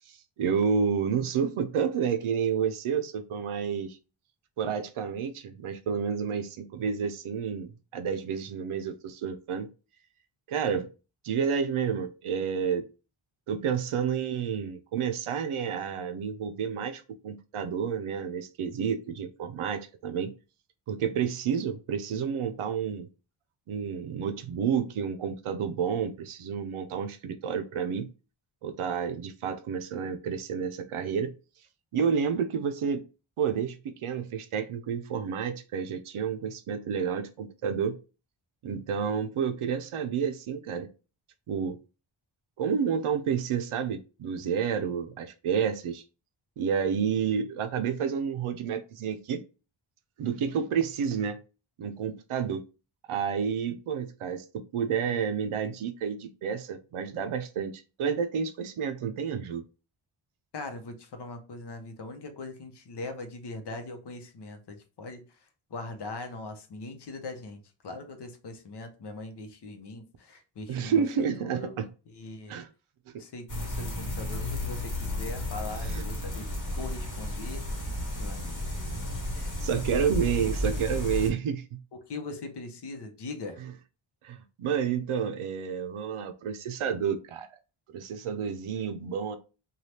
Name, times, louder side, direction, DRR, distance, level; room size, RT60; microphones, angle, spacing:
voice 1, 0.1-4.0 4.6-9.7 10.5-10.9 11.2-12.8 13.5-20.3 20.9-23.1 23.7-28.1 28.6-31.3 31.9-33.0 33.4-38.0 38.6-40.9 41.5-41.8 42.6-46.0 46.6-49.4 50.2-51.4 51.8-52.7 53.1-59.6 70.7-71.9 72.5-72.7 75.8-76.0 79.3-81.8 83.6-83.7 84.2-87.5 87.9-89.4, right 7 dB, 85° right, 0.6 m, -30 dB
voice 2, 60.5-65.3 65.7-71.0 71.4-71.7 72.1-72.6 73.2-76.5 76.8-77.8 78.2-78.7 82.1-83.6, left 3 dB, 55° left, 0.7 m, -40 dB
sound 1, 73.5-81.3, left 1 dB, 40° left, 1.1 m, -33 dB
3.2 x 2.3 x 2.7 m
wide cardioid pair, 145°, 48 cm